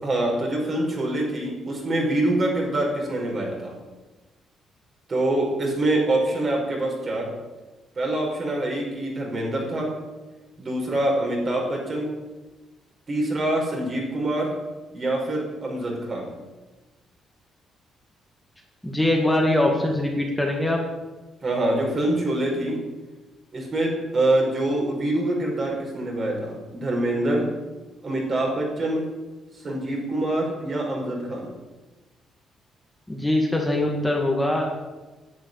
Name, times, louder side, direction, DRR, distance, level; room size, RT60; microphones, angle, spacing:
voice 1, 0.0-3.7 5.1-7.3 8.0-9.9 10.6-12.1 13.1-14.5 14.9-16.3 21.4-22.8 23.5-27.5 28.0-29.0 29.6-31.5, right 1 dB, 40° right, -1 dB, 5.3 m, -25 dB
voice 2, 18.8-20.8 33.1-34.6, left 1 dB, 5° left, -1 dB, 2.1 m, -22 dB
10.5 x 8.5 x 8.2 m, 1.2 s
cardioid pair, 90°, 0 cm